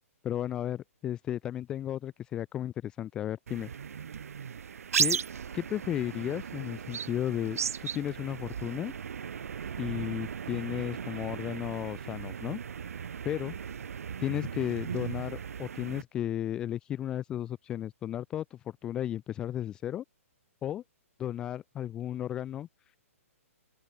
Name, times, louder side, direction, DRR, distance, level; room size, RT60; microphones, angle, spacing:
voice 1, 0.2-3.7 5.0-5.2 5.5-8.9 9.8-12.6 13.2-13.5 14.2-20.0 20.6-20.8 21.2-22.7, left 11 dB, 10° left, 0.5 m, -34 dB
sound 1, 3.5-16.0, right 7 dB, 75° right, 0.8 m, -36 dB
open air
hypercardioid pair, 170°, 8 cm